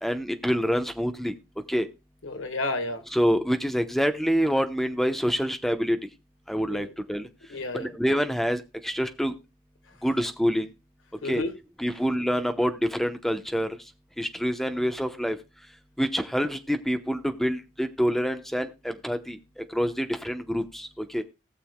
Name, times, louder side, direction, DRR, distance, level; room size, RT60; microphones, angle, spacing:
voice 1, 0.0-1.3 1.7-1.9 3.1-6.0 6.5-7.3 7.7-9.3 10.0-10.7 11.2-11.4 11.8-13.7 14.2-15.4 16.0-21.2, equal, ahead, 7 dB, 0.8 m, -26 dB
voice 2, 2.2-3.0 6.7-6.9 7.5-7.9 11.2-11.6, left 2 dB, 80° left, 8 dB, 1.5 m, -31 dB
19.0 x 6.8 x 2.2 m, 0.27 s
head